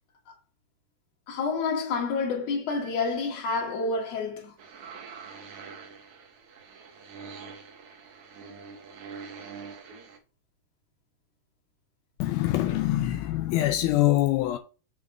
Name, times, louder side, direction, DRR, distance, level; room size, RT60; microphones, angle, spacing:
voice 1, 1.3-4.5, left 4 dB, 50° left, 2.9 m, -28 dB
sound 1, 4.6-10.2, right 5 dB, 60° right, 2.4 m, -44 dB
voice 2, 12.2-14.6, left 15 dB, 85° left, 2.5 m, -24 dB
7.2 x 3.8 x 6.3 m
omnidirectional pair, 4.3 m